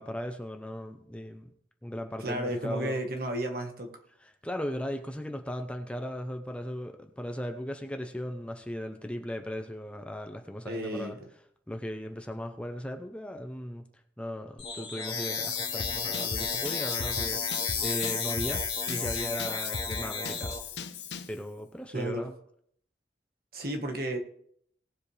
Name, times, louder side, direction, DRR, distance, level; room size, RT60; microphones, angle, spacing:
voice 1, 0.0-1.5 1.8-3.0 4.2-11.2 11.7-13.8 14.2-20.6 21.3-22.3, equal, 5° left, 0.7 m, -37 dB
voice 2, 2.2-3.9 10.6-11.2 21.9-22.3 23.5-24.2, right 1 dB, 55° right, 1.6 m, -33 dB
sound 1, 14.6-20.6, left 5 dB, 30° left, 2.2 m, -32 dB
Drum kit / Drum, 15.8-21.4, left 4 dB, 80° left, 0.8 m, -39 dB
19.0 x 7.4 x 3.4 m
head